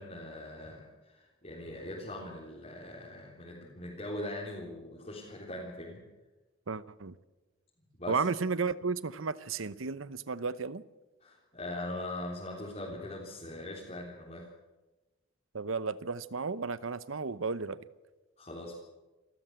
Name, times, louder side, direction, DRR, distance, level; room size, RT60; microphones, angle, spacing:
voice 1, 0.0-6.0 8.0-8.2 11.2-14.5 18.4-18.8, left 1 dB, 35° left, -5 dB, 3.9 m, -41 dB
voice 2, 6.7-7.1 8.1-10.8 15.5-17.8, right 4 dB, 85° right, 16 dB, 0.9 m, -33 dB
28.5 x 13.5 x 8.2 m, 1.1 s
head